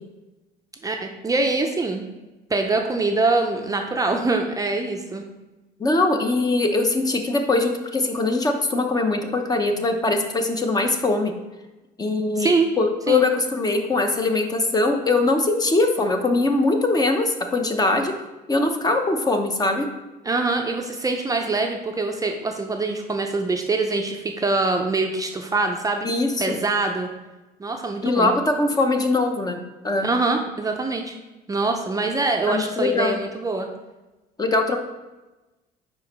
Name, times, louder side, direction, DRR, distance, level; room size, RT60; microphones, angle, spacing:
voice 1, 0.8-2.1 2.5-5.2 12.4-12.7 13.1-13.2 20.2-26.1 26.4-27.1 27.6-28.3 30.0-31.2 31.5-33.7, right 3 dB, 20° right, 3 dB, 0.5 m, -24 dB
voice 2, 5.8-11.3 12.0-18.1 18.5-19.9 26.0-26.6 28.0-30.1 32.5-33.2 34.4-34.8, left 2 dB, 20° left, 5 dB, 0.7 m, -22 dB
4.7 x 4.3 x 5.3 m, 1.1 s
cardioid pair, 110°, 17 cm